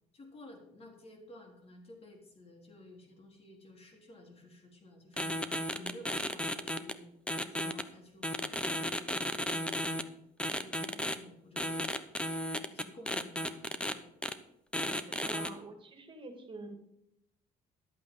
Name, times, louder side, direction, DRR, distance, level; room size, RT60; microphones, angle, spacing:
voice 1, 0.1-7.1 7.5-9.2 9.5-10.2 10.5-11.9 12.7-14.1 14.8-15.5, left 1 dB, 35° left, 2 dB, 3.6 m, -53 dB
sound 1, 5.2-6.9 7.3-7.8 8.2-10.0 10.4-11.2 11.6-13.9 14.2-14.3 14.7-15.5, left 1 dB, 5° left, 0.9 m, -34 dB
voice 2, 15.1-16.8, right 3 dB, 30° right, 5 dB, 2.5 m, -46 dB
12.0 x 8.2 x 5.5 m, 0.79 s
cardioid pair, 110°, 17 cm